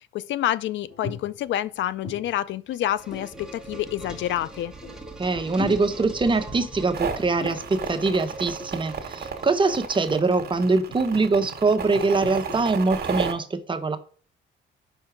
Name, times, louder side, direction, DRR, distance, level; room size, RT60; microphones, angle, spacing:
voice 1, 0.1-4.7, left 12 dB, 70° left, 0.4 m, -28 dB
sound 1, 0.9-1.5 1.8-2.7 3.1-3.8 4.4-4.5 4.7-5.3 5.6-6.4 7.3-8.2 8.6-9.1 9.9-13.0, left 3 dB, 35° left, 3.0 m, -41 dB
sound 2, 2.5-10.2, right 2 dB, 5° right, 1.3 m, -41 dB
voice 2, 5.2-14.0, right 3 dB, 25° right, 0.8 m, -23 dB
sound 3, 6.9-13.3, right 6 dB, 55° right, 1.3 m, -32 dB
5.7 x 4.5 x 5.0 m
cardioid pair, 90°, 20 cm